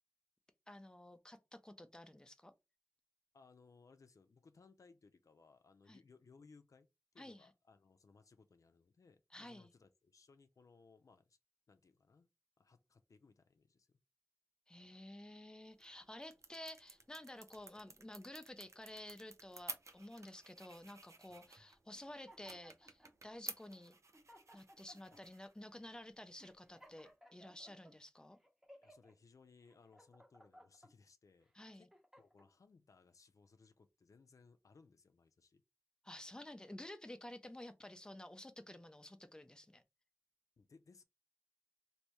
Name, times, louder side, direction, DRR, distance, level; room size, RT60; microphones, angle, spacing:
voice 1, 0.7-2.5 5.9-6.0 7.2-7.5 9.3-9.7 14.7-24.0 24.5-28.4 31.5-31.9 36.0-39.8, left 1 dB, 15° left, 0.5 m, -52 dB
voice 2, 3.3-6.9 7.1-11.4 11.7-12.3 12.6-14.0 21.3-21.4 25.1-25.2 28.8-31.9 32.2-35.6 40.6-41.0, left 4 dB, 90° left, 0.4 m, -65 dB
sound 1, 15.6-27.2, right 3 dB, 65° right, 0.6 m, -55 dB
sound 2, 21.9-23.2 23.8-23.9 24.1-25.2 25.8-25.9 26.4-27.9 28.4-29.1 29.6-30.9 31.5-32.5, equal, 5° right, 0.9 m, -62 dB
3.2 x 2.6 x 2.9 m
wide cardioid pair, 65°, 6 cm